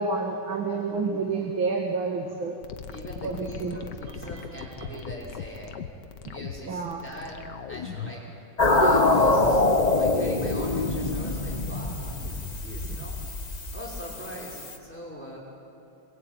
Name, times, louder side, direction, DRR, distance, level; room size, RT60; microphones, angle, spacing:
voice 1, 0.0-2.6 3.2-3.8 4.8-5.0 6.7-7.0 12.9-13.0, right 4 dB, 85° right, 1 dB, 2.7 m, -29 dB
sound 1, 2.6-8.2, left 7 dB, 65° left, 1.7 m, -39 dB
voice 2, 2.8-5.8 6.3-7.4 7.7-8.2 8.6-13.1 13.7-15.4, equal, 5° left, -3 dB, 5.6 m, -41 dB
sound 2, 8.6-14.8, left 2 dB, 25° left, 1.3 m, -24 dB
28.0 x 22.5 x 9.1 m, 2.6 s
omnidirectional pair, 2.1 m